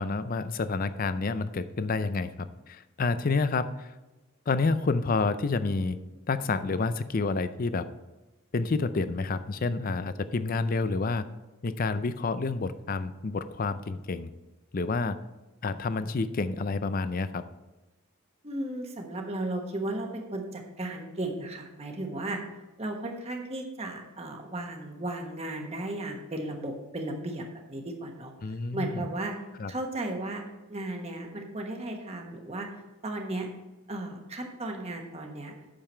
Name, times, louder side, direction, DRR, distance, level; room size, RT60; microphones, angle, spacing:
voice 1, 0.0-3.9 4.5-6.0 6.3-7.9 8.5-11.2 11.6-14.3 14.7-15.2 15.6-17.4 28.4-29.0 29.6-29.7, left 3 dB, 40° left, 13 dB, 0.4 m, -29 dB
voice 2, 18.4-22.4 22.8-28.3 28.7-29.3 29.7-30.4 30.7-32.7 33.0-33.5 33.9-35.5, right 2 dB, 30° right, 2 dB, 1.3 m, -35 dB
8.9 x 6.9 x 4.4 m, 1.1 s
head